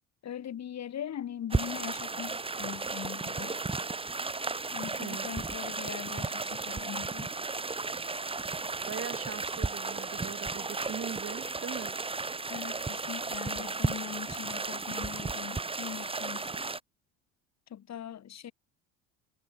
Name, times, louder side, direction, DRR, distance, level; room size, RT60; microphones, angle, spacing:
voice 1, 0.2-3.6 4.7-7.3 12.5-16.7 17.7-18.5, left 10 dB, 50° left, 5.7 m, -41 dB
sound 1, 1.5-16.8, right 3 dB, 15° right, 1.7 m, -34 dB
voice 2, 5.0-5.3 8.9-12.0, right 7 dB, 40° right, 4.4 m, -40 dB
supercardioid pair, 85°, 35 cm